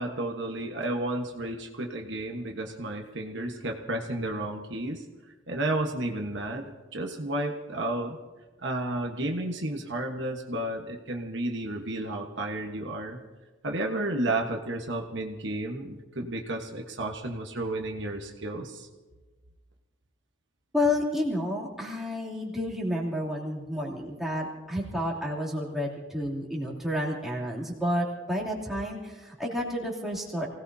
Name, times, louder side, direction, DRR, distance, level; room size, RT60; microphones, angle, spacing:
voice 1, 0.0-5.0 5.5-8.2 8.6-13.2 13.6-18.9, right 1 dB, 60° right, 2 dB, 1.3 m, -32 dB
voice 2, 20.7-30.5, left 1 dB, ahead, -5 dB, 2.9 m, -30 dB
28.5 x 18.0 x 2.8 m, 1.3 s
head